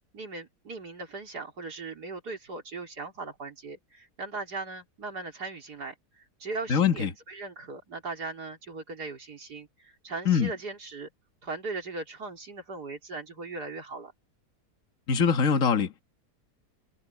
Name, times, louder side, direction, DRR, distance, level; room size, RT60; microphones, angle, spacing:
voice 1, 0.1-11.1 11.4-14.1, right 3 dB, 80° right, 3.8 m, -39 dB
voice 2, 6.7-7.1 10.3-10.5 15.1-16.0, left 6 dB, 55° left, 2.0 m, -23 dB
omnidirectional pair, 1.7 m